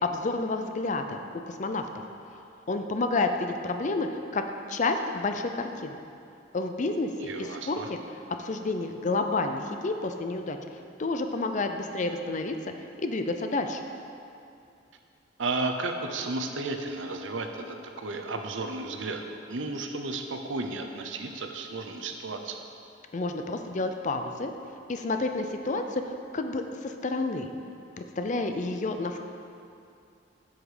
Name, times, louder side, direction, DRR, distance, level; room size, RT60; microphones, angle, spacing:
voice 1, 0.0-1.2 1.5-1.8 2.7-4.4 4.7-6.0 6.5-7.1 7.4-8.0 8.4-10.6 11.0-12.6 13.0-13.8 23.1-24.5 24.9-26.0 26.3-27.5 28.0-29.2, left 3 dB, 40° left, 6 dB, 0.5 m, -29 dB
voice 2, 7.3-7.9 15.4-19.2 19.5-22.6, right 3 dB, 75° right, 5 dB, 0.7 m, -33 dB
7.9 x 7.3 x 4.9 m, 2.6 s
head